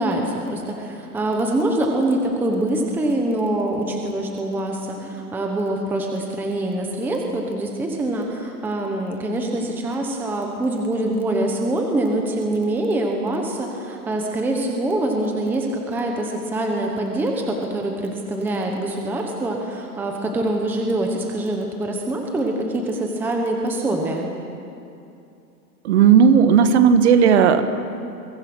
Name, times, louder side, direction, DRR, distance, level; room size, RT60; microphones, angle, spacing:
voice 1, 0.0-24.3, right 1 dB, 5° right, 2 dB, 1.1 m, -24 dB
voice 2, 25.8-27.6, right 7 dB, 40° right, 9 dB, 1.6 m, -14 dB
30.0 x 23.0 x 6.2 m, 2.7 s
hypercardioid pair, 160°, 50 cm